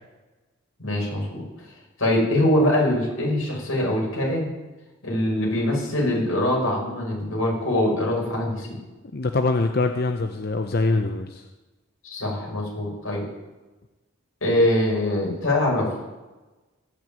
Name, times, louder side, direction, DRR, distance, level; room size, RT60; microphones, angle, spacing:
voice 1, 0.8-1.4 2.0-4.5 5.0-8.8 12.0-13.3 14.4-15.9, left 1 dB, 90° left, -2 dB, 6.1 m, -23 dB
voice 2, 9.1-11.4, left 3 dB, 45° left, 6 dB, 0.7 m, -23 dB
18.5 x 6.6 x 9.0 m, 1.1 s
head